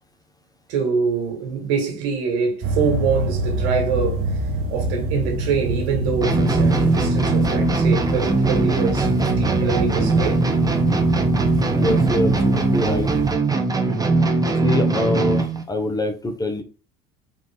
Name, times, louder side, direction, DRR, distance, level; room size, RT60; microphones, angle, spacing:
voice 1, 0.7-4.2 4.7-10.4 13.9-14.1, right 5 dB, 65° right, 1.8 m, -25 dB
sound 1, 2.6-13.3, right 2 dB, 50° right, 1.3 m, -26 dB
sound 2, 6.2-15.6, right 3 dB, 10° right, 0.8 m, -20 dB
voice 2, 11.7-13.1 14.6-16.6, left 1 dB, 10° left, 1.0 m, -24 dB
4.0 x 3.7 x 3.5 m
hypercardioid pair, 65°, 30 cm